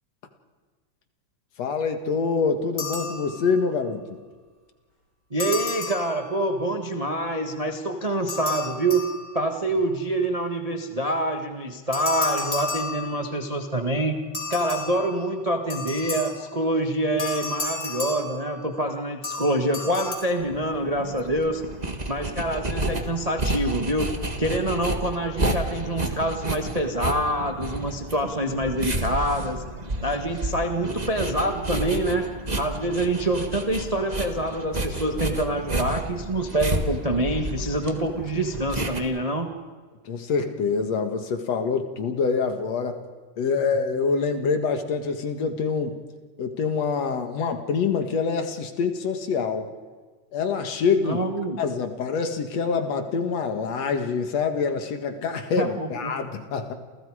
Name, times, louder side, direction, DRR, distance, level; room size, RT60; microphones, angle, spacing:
voice 1, 1.6-4.0 40.0-43.0 43.4-46.0 46.4-49.7 50.3-51.2 51.6-56.7, left 5 dB, 60° left, 7 dB, 2.6 m, -25 dB
sound 1, 2.8-3.7 5.4-6.7 8.3-9.7 11.9-13.6 14.3-16.6 17.2-18.9 19.2-20.2, left 3 dB, 25° left, 4.6 m, -33 dB
voice 2, 5.3-14.2 14.5-21.6 22.1-24.1 24.4-29.6 30.0-39.5 51.0-51.6 55.6-56.1, right 1 dB, 50° right, 4 dB, 0.4 m, -26 dB
sound 2, 20.4-39.0, right 1 dB, 25° right, 0.9 m, -31 dB
29.0 x 29.0 x 4.9 m, 1.4 s
omnidirectional pair, 3.7 m